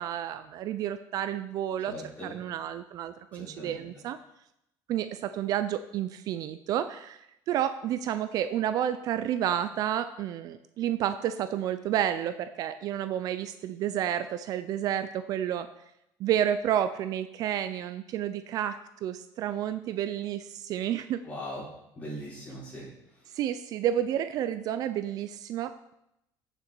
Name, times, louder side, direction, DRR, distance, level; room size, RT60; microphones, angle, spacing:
voice 1, 0.0-1.9 2.2-4.2 4.9-15.7 16.2-21.2 23.3-25.9, right 10 dB, 50° right, 11 dB, 0.5 m, -30 dB
voice 2, 1.9-2.3 3.4-3.7 21.3-21.6 22.0-22.8, equal, 20° left, -6 dB, 5.3 m, -39 dB
15.0 x 6.7 x 4.6 m, 0.83 s
cardioid pair, 160°, 8 cm